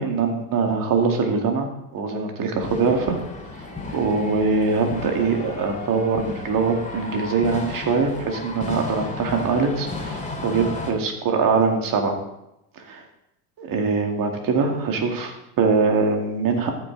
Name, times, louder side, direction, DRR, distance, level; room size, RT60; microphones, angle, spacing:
voice 1, 0.0-3.2 3.9-12.2 12.9-13.0 13.6-16.7, right 4 dB, 45° right, 3 dB, 2.1 m, -23 dB
sound 1, 2.6-10.9, left 3 dB, 15° left, 2.6 m, -33 dB
13.5 x 6.2 x 3.9 m, 0.86 s
hypercardioid pair, 80°, 48 cm